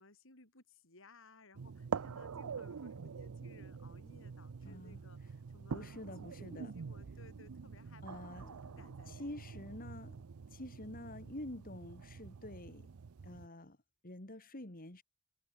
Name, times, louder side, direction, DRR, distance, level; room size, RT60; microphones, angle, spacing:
voice 1, 0.0-5.9 6.2-8.2 8.5-9.6 10.2-10.3, left 2 dB, 60° left, 5.8 m, -61 dB
sound 1, 1.5-13.5, right 6 dB, 75° right, 0.5 m, -46 dB
voice 2, 4.6-5.0 5.7-6.7 8.0-8.6 9.1-10.2 10.5-12.9 13.2-13.8 14.0-15.0, left 1 dB, 40° left, 3.0 m, -47 dB
head